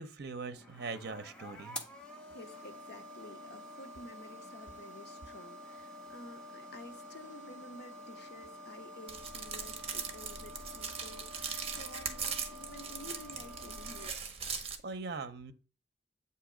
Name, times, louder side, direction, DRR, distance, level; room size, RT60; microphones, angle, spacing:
voice 1, 0.0-1.8 14.8-15.5, right 4 dB, 60° right, 0.6 m, -41 dB
sound 1, 0.5-14.1, equal, 5° left, 0.8 m, -49 dB
voice 2, 2.3-14.1, left 2 dB, 65° left, 0.8 m, -51 dB
sound 2, 9.1-14.8, right 6 dB, 35° right, 0.9 m, -40 dB
8.2 x 2.8 x 4.9 m
head